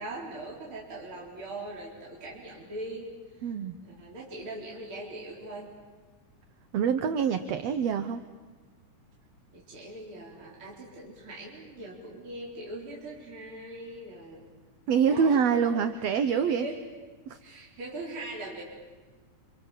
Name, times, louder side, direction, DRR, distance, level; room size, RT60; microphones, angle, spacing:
voice 1, 0.0-3.5 3.8-5.7 9.5-14.5 15.0-15.8 16.6-16.8 17.4-18.6, right 2 dB, 40° right, -4 dB, 4.8 m, -41 dB
voice 2, 3.4-3.7 6.7-8.2 14.9-16.7 17.3-17.4, right 7 dB, 65° right, 9 dB, 1.9 m, -25 dB
29.0 x 27.0 x 7.4 m, 1.4 s
omnidirectional pair, 3.5 m